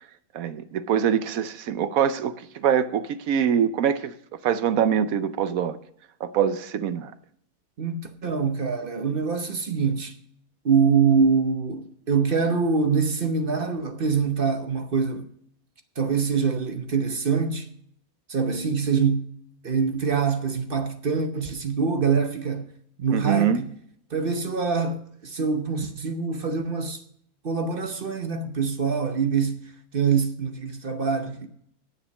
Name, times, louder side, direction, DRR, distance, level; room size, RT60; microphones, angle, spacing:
voice 1, 0.3-4.1 4.4-5.8 6.2-7.1 23.1-23.6, right 8 dB, 70° right, 1.1 m, -24 dB
voice 2, 7.8-10.1 10.6-15.3 16.0-17.7 18.3-19.3 19.6-22.7 23.0-23.7 24.1-27.0 27.4-31.5, right 5 dB, 45° right, 0.9 m, -24 dB
9.9 x 7.4 x 6.4 m
omnidirectional pair, 1.6 m